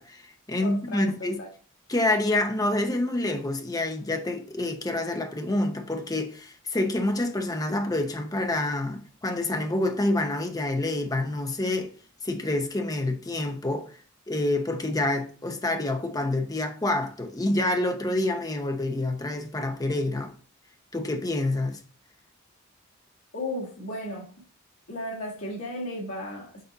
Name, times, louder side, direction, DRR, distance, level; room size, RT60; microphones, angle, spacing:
voice 1, 0.0-1.4 1.9-11.9 12.2-14.0 14.3-20.3 20.9-21.8, left 2 dB, 15° left, 0.7 m, -27 dB
voice 2, 0.6-1.5 23.3-24.3 24.9-26.6, left 1 dB, 80° left, 1.7 m, -35 dB
6.7 x 4.1 x 3.9 m
head